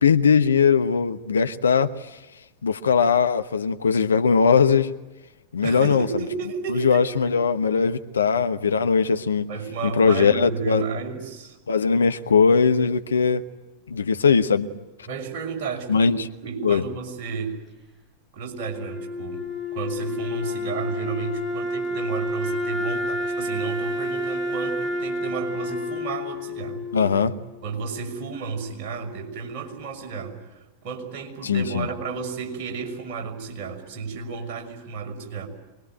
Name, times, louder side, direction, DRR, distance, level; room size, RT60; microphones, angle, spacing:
voice 1, 0.0-1.9 2.6-4.9 5.5-6.1 6.7-9.5 10.0-10.8 11.7-13.4 13.9-14.7 15.9-16.2 16.6-16.8 26.9-27.3 31.4-31.9, left 6 dB, 70° left, 10 dB, 1.1 m, -20 dB
voice 2, 5.6-7.4 9.5-11.6 15.0-17.6 18.3-19.5 19.7-26.8 27.6-35.5, right 5 dB, 45° right, 1 dB, 6.1 m, -32 dB
Wind instrument woodwind instrument, 18.6-27.6, left 1 dB, 10° right, 6.2 m, -29 dB
25.0 x 21.5 x 9.2 m, 1.1 s
figure-of-eight pair, 90°, 0 cm